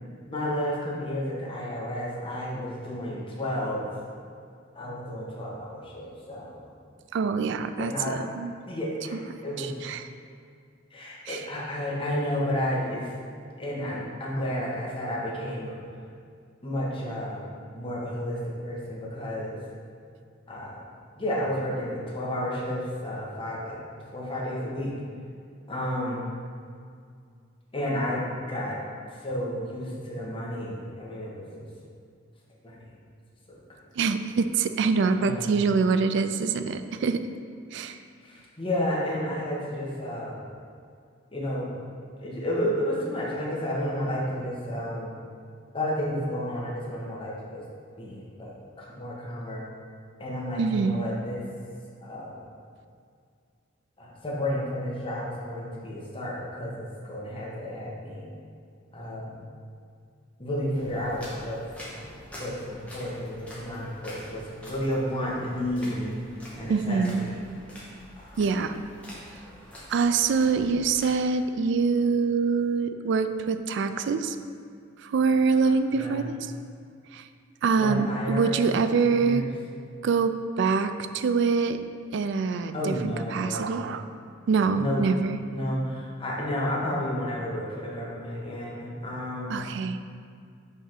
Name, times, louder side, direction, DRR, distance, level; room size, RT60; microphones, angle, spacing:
voice 1, 0.2-3.9 4.7-6.6 7.8-8.2 8.7-9.1 9.4-9.8 10.9-13.1 13.6-15.7 16.6-19.6 20.5-23.8 24.1-24.9 25.7-26.3 27.7-28.8 29.2-31.7 32.6-32.8 33.5-33.6 35.2-35.6 38.2-40.5 41.3-41.7 42.2-45.1 45.7-47.6 48.0-48.5 48.8-49.7 50.2-51.4 52.0-52.4 54.0-58.3 58.9-59.4 60.4-61.6 62.3-66.1 66.5-67.4 68.2-68.6 75.6-76.3 77.8-78.6 79.0-79.5 82.7-83.8 84.7-85.0 85.5-89.6, equal, 25° left, -5 dB, 1.2 m, -31 dB
voice 2, 7.1-8.5 9.6-10.1 11.3-11.4 34.0-37.2 37.7-38.0 50.6-51.0 66.7-67.3 68.4-68.8 69.9-74.4 75.0-76.4 77.1-77.2 77.6-79.4 80.0-81.8 82.1-84.0 84.5-85.4 89.5-90.0, right 5 dB, 60° right, 10 dB, 0.3 m, -25 dB
sound 1, 60.7-71.2, equal, 5° left, 1.1 m, -46 dB
5.6 x 3.5 x 5.8 m, 2.2 s
head